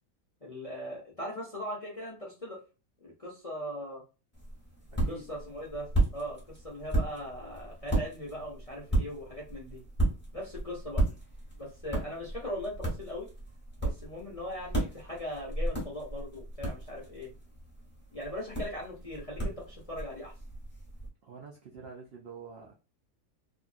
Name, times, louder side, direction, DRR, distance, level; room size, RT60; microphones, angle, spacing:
voice 1, 0.4-2.6 3.0-4.0 5.1-9.8 10.3-11.0 11.6-13.3 13.8-17.3 18.1-20.3, left 1 dB, 40° left, -4 dB, 0.5 m, -39 dB
sound 1, 4.3-21.1, right 2 dB, 10° left, 1.1 m, -34 dB
voice 2, 4.9-5.3 11.1-11.2 21.2-22.7, right 5 dB, 70° right, -1 dB, 0.5 m, -47 dB
2.7 x 2.4 x 2.4 m, 0.31 s
omnidirectional pair, 1.7 m